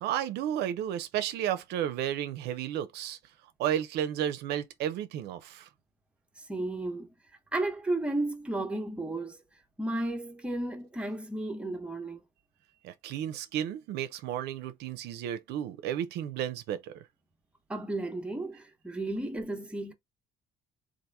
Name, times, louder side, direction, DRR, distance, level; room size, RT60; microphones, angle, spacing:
voice 1, 0.0-3.2 3.6-5.7 12.8-17.0, right 10 dB, 80° right, 0.5 m, -32 dB
voice 2, 6.4-7.1 7.5-9.4 9.8-12.2 17.7-19.9, right 2 dB, 5° right, 0.8 m, -33 dB
2.8 x 2.5 x 3.4 m
cardioid pair, 110°, 17 cm